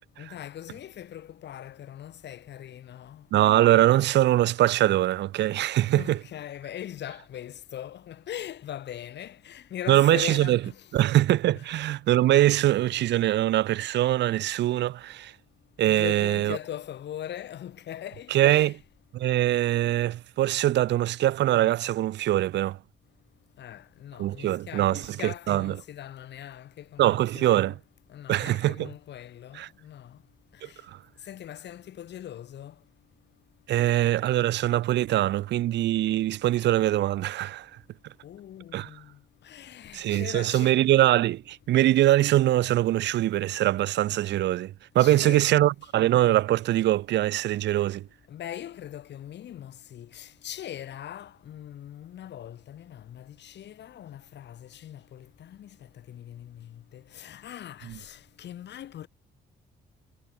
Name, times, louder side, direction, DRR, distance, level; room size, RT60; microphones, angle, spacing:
voice 1, 0.2-3.3 5.8-10.9 11.5-11.6 15.9-18.8 23.6-27.8 28.1-30.2 30.5-30.8 31.3-32.7 38.2-40.8 45.0-45.6 48.3-55.7 56.1-59.1, left 11 dB, 70° left, 3.0 m, -41 dB
voice 2, 3.3-6.2 9.9-10.6 10.9-15.3 15.8-16.6 18.3-18.7 19.1-22.8 24.2-25.8 27.0-27.7 28.3-28.9 29.5-29.7 30.9-31.0 33.7-37.7 38.7-38.9 39.9-48.1, right 14 dB, 70° right, 0.5 m, -23 dB
cardioid pair, 110°, 19 cm